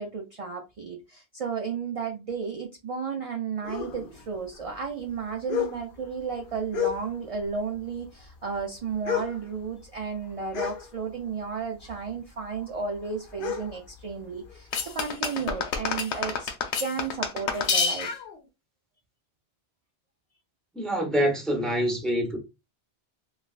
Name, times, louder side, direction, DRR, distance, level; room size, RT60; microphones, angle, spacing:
voice 1, 0.0-16.5 16.8-18.2, right 5 dB, 55° right, 0.4 m, -33 dB
sound 1, 3.6-7.5 7.7-11.5 11.8-15.0, left 9 dB, 55° left, 0.7 m, -34 dB
sound 2, 14.7-18.3, left 5 dB, 85° left, 0.9 m, -28 dB
voice 2, 20.7-22.4, equal, ahead, 0.7 m, -26 dB
3.2 x 2.4 x 2.4 m
omnidirectional pair, 1.1 m